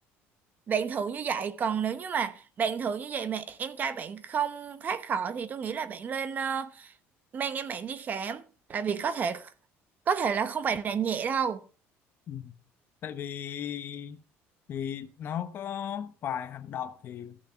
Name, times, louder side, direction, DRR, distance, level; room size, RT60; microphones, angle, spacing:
voice 1, 0.7-6.9 7.3-8.4 8.7-9.5 10.1-11.6, right 6 dB, 35° right, 0.9 m, -30 dB
voice 2, 13.0-14.2 14.7-17.4, left 9 dB, 45° left, 0.9 m, -36 dB
14.0 x 6.3 x 5.7 m
cardioid pair, 145°, 5 cm